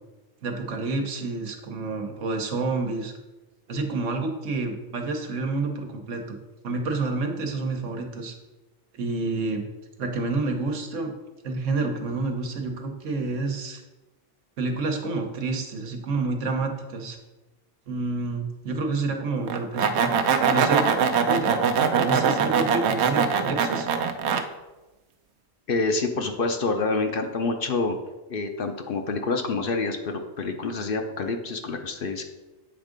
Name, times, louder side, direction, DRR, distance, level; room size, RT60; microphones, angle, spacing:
voice 1, 0.4-3.1 3.7-6.4 6.6-8.3 8.9-9.7 10.0-11.1 11.4-13.8 14.6-17.2 17.9-20.1 20.5-21.0 21.3-21.7 21.9-23.9, right 3 dB, 85° right, 4 dB, 1.3 m, -29 dB
sound 1, 19.5-24.4, right 6 dB, 70° right, 0.9 m, -22 dB
voice 2, 25.7-28.0 28.3-32.2, left 3 dB, 55° left, 5 dB, 0.8 m, -27 dB
8.1 x 3.6 x 5.1 m, 1.1 s
omnidirectional pair, 1.2 m